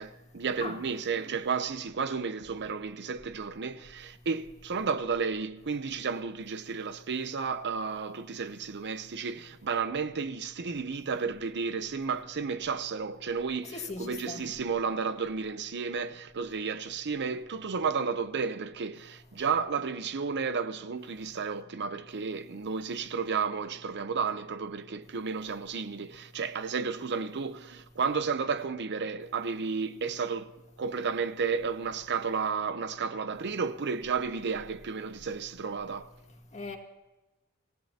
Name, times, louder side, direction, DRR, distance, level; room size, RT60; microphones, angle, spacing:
voice 1, 0.0-30.5 30.8-36.1, right 5 dB, 50° right, 0.7 m, -32 dB
voice 2, 13.6-14.4 36.5-36.8, left 3 dB, 30° left, 2.0 m, -38 dB
27.0 x 16.5 x 2.9 m
head